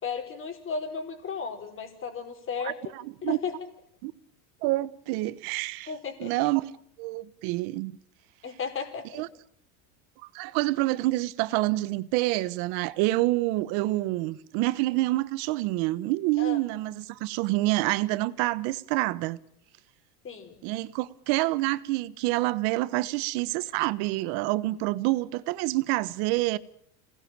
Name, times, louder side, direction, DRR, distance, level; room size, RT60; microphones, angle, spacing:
voice 1, 0.0-2.8 3.2-3.5 5.9-6.3 8.4-9.2 16.4-16.6 20.2-20.5, left 5 dB, 25° left, 4.9 m, -34 dB
voice 2, 2.9-3.4 4.0-4.1 4.6-5.9 6.2-6.7 7.0-7.9 9.1-9.3 10.3-19.4 20.6-26.6, right 19 dB, 55° right, 1.2 m, -27 dB
26.0 x 19.0 x 8.9 m
supercardioid pair, 140°, 44 cm